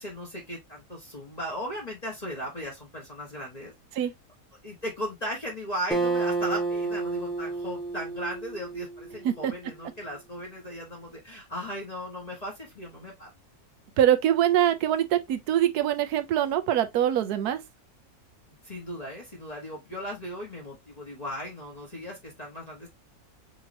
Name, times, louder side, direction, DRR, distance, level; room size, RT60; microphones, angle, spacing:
voice 1, 0.0-4.1 4.6-13.3 18.6-22.9, equal, 25° left, 1.3 m, -37 dB
Acoustic guitar, 5.9-9.5, right 3 dB, ahead, 0.9 m, -30 dB
voice 2, 14.0-17.6, right 11 dB, 80° right, 1.2 m, -23 dB
5.2 x 2.9 x 2.7 m
omnidirectional pair, 1.6 m